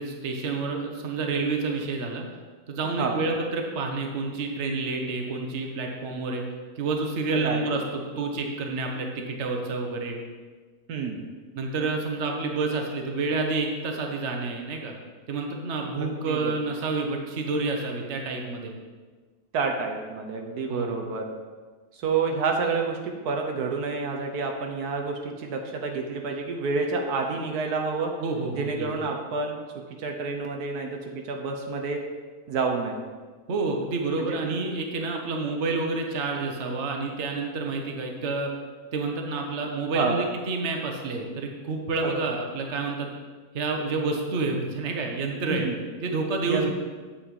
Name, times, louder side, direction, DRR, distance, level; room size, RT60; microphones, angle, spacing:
voice 1, 0.0-2.2 2.7-6.4 6.8-10.2 11.5-14.9 15.3-18.7 20.7-21.0 28.2-28.9 33.5-38.5 38.9-43.1 43.5-45.7 46.0-46.7, right 3 dB, 50° right, 2 dB, 1.3 m, -29 dB
voice 2, 10.9-11.2 16.0-16.6 19.5-21.3 21.9-28.1 28.5-29.6 30.0-32.0 32.5-33.1 34.2-34.4 39.9-40.3 42.0-42.2 45.5-45.8 46.4-46.7, right 4 dB, 80° right, 3 dB, 1.5 m, -29 dB
8.7 x 4.5 x 7.4 m, 1.4 s
omnidirectional pair, 1.6 m